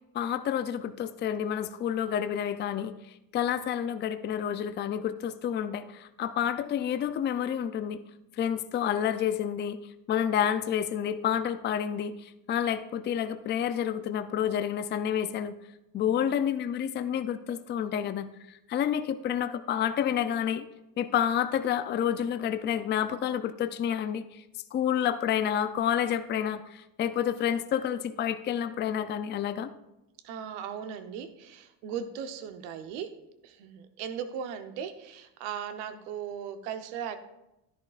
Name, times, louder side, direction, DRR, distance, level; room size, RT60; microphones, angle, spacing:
voice 1, 0.1-3.0 3.3-8.0 8.4-9.8 10.1-15.5 15.9-18.3 18.7-20.7 21.0-24.4 24.7-29.7, left 9 dB, 25° left, 11 dB, 0.4 m, -29 dB
voice 2, 30.2-33.1 33.4-37.2, right 8 dB, 85° right, 9 dB, 1.0 m, -37 dB
11.0 x 10.5 x 2.4 m, 0.93 s
supercardioid pair, 105°, 49 cm